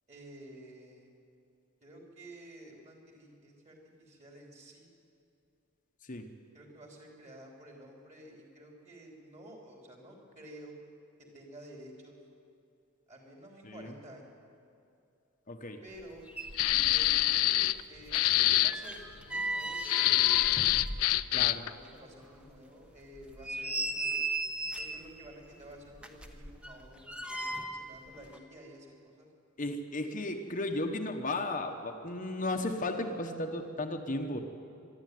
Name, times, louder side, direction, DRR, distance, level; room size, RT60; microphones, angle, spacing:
voice 1, 0.1-1.1 1.8-4.9 6.5-10.7 11.3-12.2 13.1-14.4 15.8-16.2 16.7-20.5 21.6-24.3 24.8-29.3, right 1 dB, 30° right, 0 dB, 3.4 m, -51 dB
voice 2, 15.5-15.8 21.3-21.6 29.6-34.4, left 2 dB, 35° left, 4 dB, 1.1 m, -34 dB
sound 1, 16.0-16.1 16.3-17.3 17.5-21.5 21.9-22.0 22.5-22.6 23.2-25.1 26.0-28.0 28.2-28.4, right 2 dB, 5° right, 1.1 m, -37 dB
sound 2, 16.6-17.8 18.1-18.7 19.8-21.7, left 15 dB, 75° left, 0.4 m, -25 dB
23.5 x 12.0 x 9.4 m, 2.6 s
head